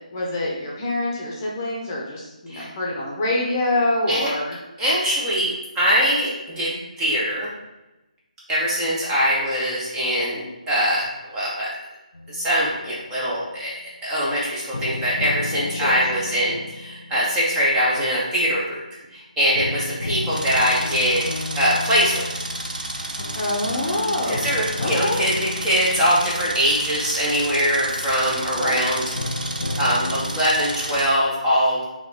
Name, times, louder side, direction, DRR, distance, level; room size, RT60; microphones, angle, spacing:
voice 1, 0.1-4.6 15.7-16.2 23.4-24.5 24.8-25.2 28.6-28.9, left 1 dB, 25° left, -4 dB, 0.9 m, -25 dB
voice 2, 4.8-7.5 8.5-11.7 12.3-13.7 14.0-18.8 19.1-21.3 21.6-22.2 24.3-29.0 29.8-31.8, equal, 10° right, -8 dB, 0.9 m, -22 dB
sound 1, 12.1-13.3 14.7-18.7 19.5-28.4 29.1-30.3, left 2 dB, 75° left, 0.5 m, -34 dB
sound 2, 20.3-31.1, right 2 dB, 75° right, 0.6 m, -32 dB
4.0 x 3.0 x 4.2 m, 1.0 s
figure-of-eight pair, 155°, 4 cm